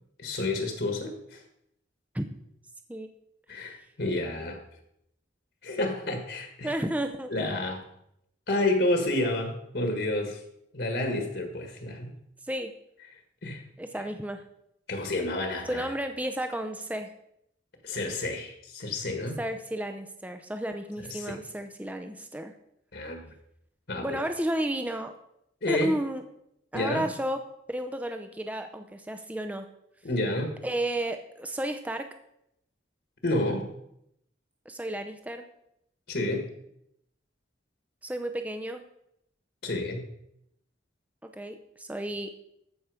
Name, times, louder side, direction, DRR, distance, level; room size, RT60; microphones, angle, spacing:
voice 1, 0.2-1.4 3.5-4.6 5.6-6.7 7.3-7.8 8.5-10.4 10.7-12.1 13.4-13.6 14.9-15.9 17.8-19.4 21.0-21.4 22.9-23.3 23.9-24.2 25.6-26.0 26.7-27.1 30.0-30.6 33.2-33.7 36.1-36.5 39.6-40.0, left 2 dB, 65° left, 4 dB, 1.7 m, -30 dB
voice 2, 6.6-7.3 12.5-12.7 13.8-14.4 15.7-17.1 19.4-22.5 24.0-25.1 25.7-26.2 26.7-27.4 27.7-29.7 30.6-32.1 34.7-35.5 38.0-38.8 41.2-42.3, right 1 dB, 10° right, 6 dB, 0.6 m, -32 dB
14.0 x 5.9 x 5.0 m, 0.78 s
head